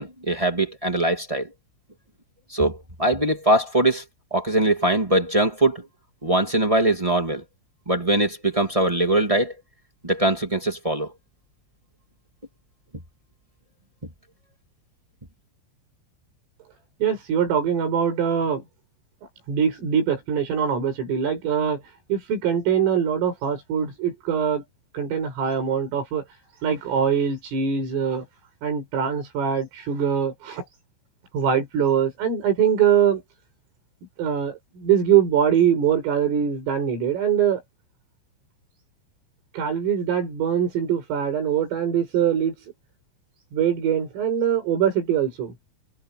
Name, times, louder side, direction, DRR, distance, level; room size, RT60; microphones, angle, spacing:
voice 1, 0.0-1.5 2.5-4.0 4.3-5.8 6.2-7.4 7.8-9.5 10.0-11.1, right 1 dB, 55° right, 0.3 m, -22 dB
voice 2, 17.0-18.6 19.5-21.8 22.1-24.6 24.9-26.2 26.6-28.3 28.6-30.6 31.3-33.2 34.2-37.6 39.5-42.5 43.5-45.5, right 8 dB, 85° right, 9.4 m, -23 dB
omnidirectional pair, 5.7 m